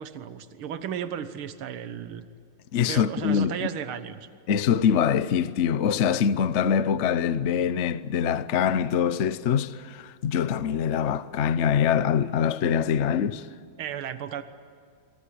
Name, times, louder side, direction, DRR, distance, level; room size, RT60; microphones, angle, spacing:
voice 1, 0.0-2.2 2.9-4.3 13.8-14.4, right 8 dB, 80° right, 2.1 m, -34 dB
voice 2, 2.7-3.6 4.5-13.5, left 8 dB, 65° left, 0.7 m, -24 dB
29.0 x 23.5 x 8.6 m
omnidirectional pair, 2.3 m